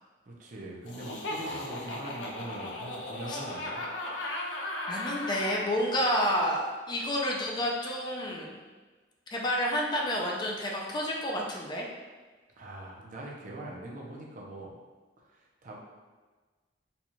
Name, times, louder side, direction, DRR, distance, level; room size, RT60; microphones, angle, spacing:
voice 1, 0.2-3.8 12.6-14.7 15.3-15.8, right 1 dB, 45° right, -3 dB, 0.6 m, -42 dB
Laughter, 0.9-5.7, left 1 dB, 80° left, 0.5 m, -36 dB
voice 2, 4.9-8.6 9.3-11.9, equal, 25° left, -2 dB, 0.4 m, -29 dB
4.1 x 2.3 x 3.0 m, 1.3 s
head